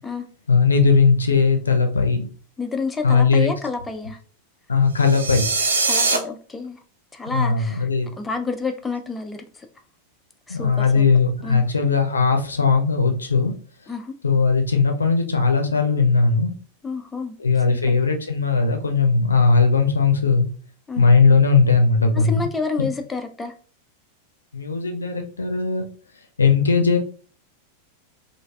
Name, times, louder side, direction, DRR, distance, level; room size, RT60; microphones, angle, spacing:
voice 1, 0.5-2.3 3.0-3.5 4.7-5.5 7.3-8.1 10.5-13.5 14.2-16.5 17.4-20.5 21.0-22.5 24.5-25.9 26.4-27.0, left 4 dB, 75° left, 4 dB, 0.5 m, -18 dB
voice 2, 2.6-4.2 5.9-6.8 7.1-7.9 8.2-9.7 10.5-11.1 11.4-11.6 13.9-14.1 16.8-17.4 17.7-18.0 20.9-21.1 22.1-23.5, left 4 dB, 10° left, 5 dB, 0.3 m, -29 dB
sound 1, 5.0-6.2, right 3 dB, 75° right, 0.4 m, -22 dB
3.2 x 2.4 x 2.2 m, 0.40 s
figure-of-eight pair, 90°, 0 cm